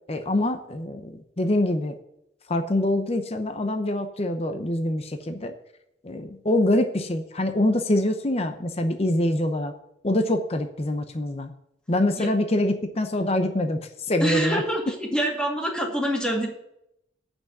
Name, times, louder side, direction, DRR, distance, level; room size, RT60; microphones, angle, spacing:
voice 1, 0.1-2.0 2.5-5.5 6.0-9.7 10.0-11.5 11.9-14.6, left 1 dB, 30° left, 7 dB, 0.7 m, -25 dB
voice 2, 14.2-16.5, equal, 5° left, 0 dB, 2.0 m, -26 dB
8.9 x 6.2 x 8.3 m, 0.80 s
head